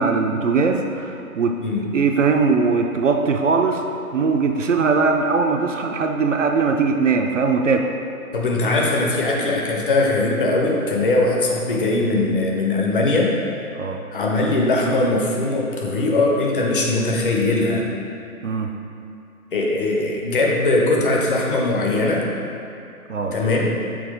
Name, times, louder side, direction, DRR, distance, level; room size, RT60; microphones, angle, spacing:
voice 1, 0.0-1.6 1.9-3.8 4.1-7.9 13.7-14.0 18.4-18.7 23.1-23.4, right 4 dB, 60° right, 4 dB, 0.5 m, -20 dB
voice 2, 1.6-1.9 8.3-13.3 14.1-17.9 19.5-22.3 23.3-23.7, left 2 dB, 35° left, -2 dB, 0.8 m, -20 dB
6.1 x 4.5 x 3.6 m, 2.6 s
figure-of-eight pair, 135°, 44 cm